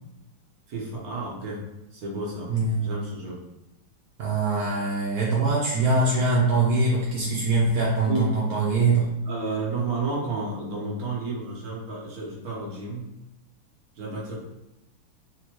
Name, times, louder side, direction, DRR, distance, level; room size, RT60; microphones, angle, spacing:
voice 1, 0.7-1.6 1.9-2.5 2.8-3.4 8.0-8.4 9.3-13.1 14.0-14.4, right 3 dB, 60° right, -4 dB, 1.1 m, -31 dB
voice 2, 2.5-2.8 4.2-9.1, right 3 dB, 85° right, -4 dB, 0.7 m, -23 dB
4.4 x 2.3 x 2.9 m, 0.89 s
omnidirectional pair, 2.3 m